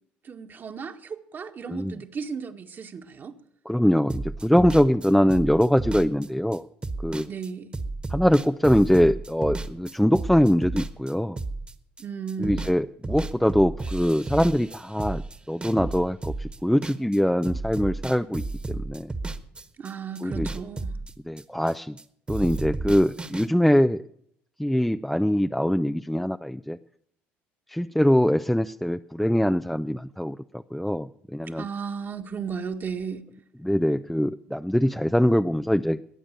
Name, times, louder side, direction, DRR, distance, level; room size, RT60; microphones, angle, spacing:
voice 1, 0.2-3.3 7.3-7.7 12.0-12.7 19.8-21.0 31.6-33.2, right 6 dB, 45° right, 5 dB, 1.7 m, -35 dB
voice 2, 3.7-6.6 7.0-7.3 8.1-11.4 12.4-15.2 15.5-19.1 20.2-20.5 21.3-22.0 22.3-24.0 24.6-26.8 27.7-31.7 33.6-36.0, equal, 5° left, 9 dB, 0.5 m, -23 dB
sound 1, 4.1-12.8 13.0-17.2 17.4-22.0 22.3-23.5, right 3 dB, 20° right, 1.5 m, -33 dB
21.5 x 8.7 x 6.7 m, 0.68 s
supercardioid pair, 75°, 5 cm